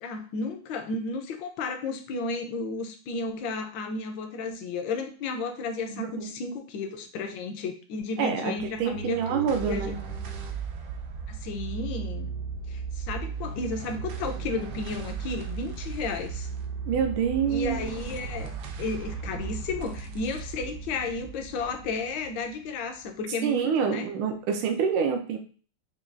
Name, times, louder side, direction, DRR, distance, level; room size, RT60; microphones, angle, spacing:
voice 1, 0.0-9.9 11.3-12.3 12.7-16.5 17.5-18.5 18.8-24.1, left 4 dB, 75° left, 5 dB, 1.3 m, -33 dB
voice 2, 5.9-6.3 8.2-10.0 16.9-17.8 23.4-25.4, right 7 dB, 90° right, 4 dB, 1.5 m, -27 dB
sound 1, 8.6-23.2, right 6 dB, 70° right, 1.1 m, -36 dB
5.7 x 2.3 x 2.5 m, 0.39 s
omnidirectional pair, 2.3 m